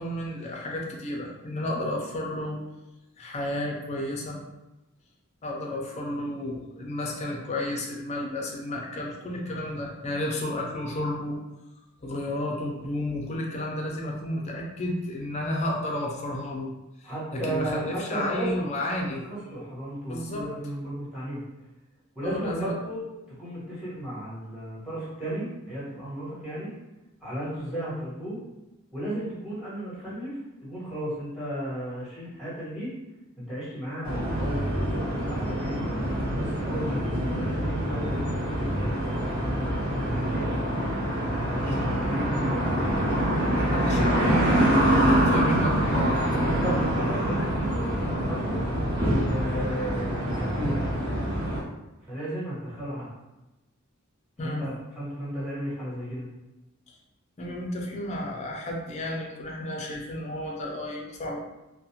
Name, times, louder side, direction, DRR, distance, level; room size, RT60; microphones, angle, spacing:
voice 1, 0.0-2.6 3.2-4.4 5.4-11.4 12.0-16.7 17.0-19.2 20.1-20.5 22.2-22.7 41.8-42.0 43.7-46.2 54.4-54.6 57.4-61.4, left 1 dB, 30° left, -1 dB, 0.5 m, -32 dB
voice 2, 17.0-18.7 19.2-21.4 22.1-26.7 27.2-28.4 28.9-32.9 33.4-35.9 36.3-40.6 41.5-43.1 43.9-44.1 46.4-48.6 49.2-50.8 52.0-53.1 54.4-56.3, right 1 dB, 5° right, -10 dB, 1.2 m, -34 dB
sound 1, 34.0-51.6, right 1 dB, 25° right, 0.9 m, -25 dB
2.4 x 2.1 x 2.8 m, 1.0 s
head